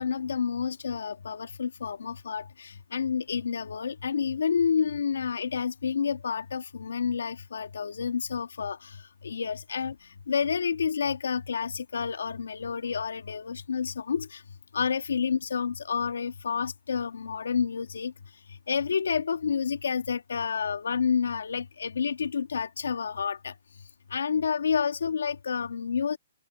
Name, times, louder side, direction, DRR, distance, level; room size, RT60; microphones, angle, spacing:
voice 1, 0.0-9.0 9.2-10.0 10.3-14.4 14.7-18.1 18.7-23.5 24.1-26.2, left 6 dB, 85° left, 2.3 m, -29 dB
hypercardioid pair, 155°, 0 cm